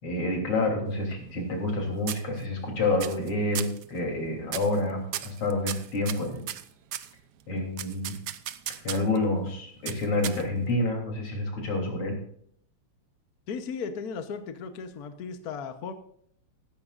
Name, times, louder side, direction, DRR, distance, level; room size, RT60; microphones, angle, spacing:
voice 1, 0.0-6.4 7.5-8.2 8.8-12.2, left 2 dB, 80° left, 0 dB, 4.3 m, -28 dB
sound 1, 0.9-1.8 2.1-2.7 3.0-3.3 3.5-3.8 4.5-4.8 5.1-7.1 7.8-9.2 9.9-10.7, right 11 dB, 65° right, 1.0 m, -36 dB
voice 2, 13.5-15.9, left 5 dB, 50° left, 8 dB, 1.3 m, -36 dB
16.0 x 14.0 x 2.5 m, 0.62 s
omnidirectional pair, 2.4 m